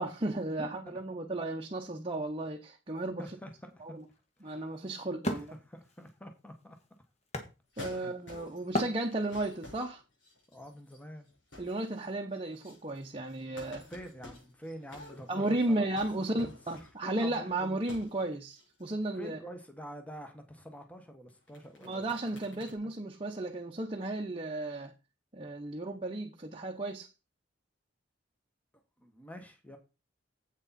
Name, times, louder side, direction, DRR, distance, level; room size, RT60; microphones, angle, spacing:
voice 1, 0.0-3.4 3.8-4.0 4.4-5.5 7.8-10.0 11.6-13.9 15.3-19.4 21.8-24.9 25.3-27.1, right 2 dB, 30° right, 0.8 m, -34 dB
voice 2, 0.6-1.0 3.2-4.0 4.4-4.8 5.3-6.8 7.9-8.1 10.5-11.3 13.9-15.9 16.3-16.5 17.0-17.8 19.2-22.0 22.3-22.6 29.0-29.8, equal, 10° left, 1.3 m, -47 dB
Wood, 3.5-8.2 8.7-9.6, equal, 35° left, 1.5 m, -37 dB
sound 1, 7.7-8.8 9.1-11.0 11.3-12.1 12.3-17.2 17.8-18.2 18.5-18.9 21.3-22.7, left 2 dB, 75° left, 6.3 m, -50 dB
8.3 x 6.5 x 4.2 m
head